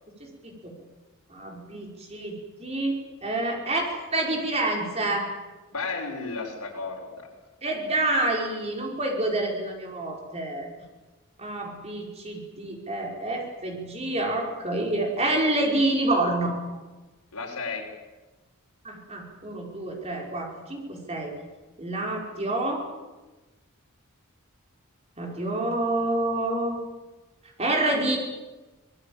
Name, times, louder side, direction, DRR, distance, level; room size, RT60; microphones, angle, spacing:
voice 1, 0.2-0.7 1.3-3.0 3.2-5.3 7.6-10.7 11.4-16.8 18.8-21.3 21.8-22.8 25.2-26.8 27.6-28.2, right 2 dB, 30° right, 1 dB, 5.3 m, -28 dB
voice 2, 5.7-7.3 17.3-17.9, left 4 dB, 85° left, -1 dB, 6.1 m, -33 dB
25.5 x 19.5 x 8.9 m, 1.2 s
head